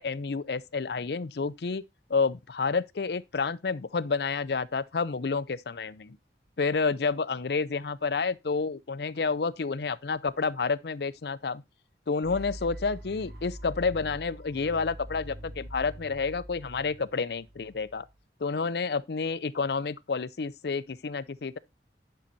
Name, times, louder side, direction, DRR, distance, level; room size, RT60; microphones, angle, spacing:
voice 1, 0.0-1.8 2.1-6.2 6.6-11.6 12.1-18.1 18.4-21.6, left 4 dB, 65° left, 0.5 m, -29 dB
sound 1, 12.2-18.2, equal, 60° right, 2.4 m, -44 dB
10.5 x 5.7 x 4.0 m
head